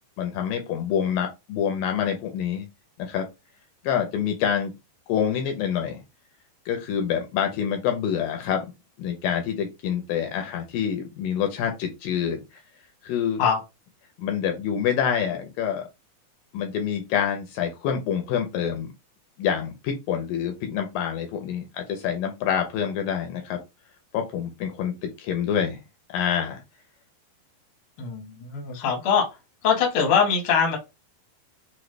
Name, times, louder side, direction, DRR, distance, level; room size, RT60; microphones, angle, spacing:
voice 1, 0.2-2.7 3.0-3.3 3.8-4.7 5.1-6.0 6.7-8.7 9.0-12.4 13.0-13.4 14.2-15.9 16.5-18.9 19.4-23.6 24.1-25.8 26.1-26.6, left 8 dB, 75° left, 4 dB, 2.2 m, -26 dB
voice 2, 28.0-29.3 29.6-30.8, left 6 dB, 60° left, 1 dB, 1.4 m, -22 dB
5.9 x 2.2 x 3.2 m, 0.24 s
omnidirectional pair, 4.4 m